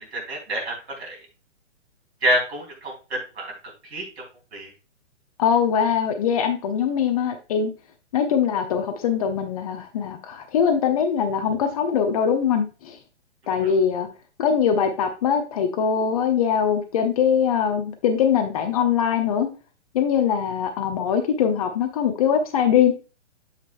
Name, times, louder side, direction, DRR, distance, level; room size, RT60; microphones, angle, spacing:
voice 1, 0.1-1.2 2.2-3.5 3.9-4.2 4.5-4.7 13.6-13.7, equal, 60° right, -1 dB, 3.5 m, -27 dB
voice 2, 5.4-7.7 8.1-13.0 13.5-14.1 14.4-19.5 19.9-22.9, left 7 dB, 30° left, 6 dB, 0.8 m, -22 dB
7.6 x 6.3 x 2.5 m, 0.32 s
figure-of-eight pair, 125°, 36 cm